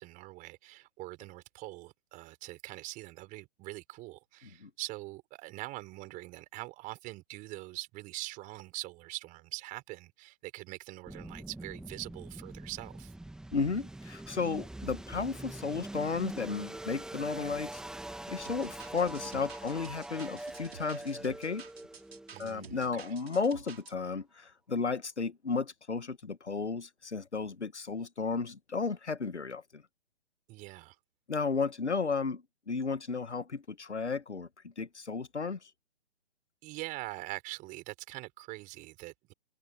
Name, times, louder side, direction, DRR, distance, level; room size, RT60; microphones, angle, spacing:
voice 1, 0.0-13.1 22.3-23.1 30.5-31.0 36.6-39.3, right 20 dB, 25° right, 5.4 m, -43 dB
sound 1, 11.1-23.9, right 1 dB, ahead, 1.5 m, -44 dB
voice 2, 13.5-17.8 18.3-21.6 22.4-29.8 31.3-32.4 32.7-34.5 34.8-35.6, left 4 dB, 85° left, 1.3 m, -33 dB
sound 2, 18.4-23.9, right 6 dB, 65° right, 5.5 m, -51 dB
figure-of-eight pair, 130°, 33 cm